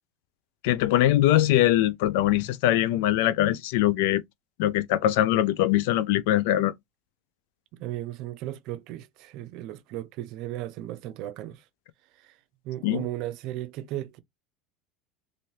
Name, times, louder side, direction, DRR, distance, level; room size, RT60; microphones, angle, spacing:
voice 1, 0.6-4.2 4.6-6.7 12.8-13.0, left 14 dB, 75° left, 0.4 m, -22 dB
voice 2, 7.7-11.6 12.2-12.4 12.6-14.2, right 14 dB, 60° right, 0.5 m, -35 dB
2.7 x 2.6 x 3.1 m
supercardioid pair, 110°, 0 cm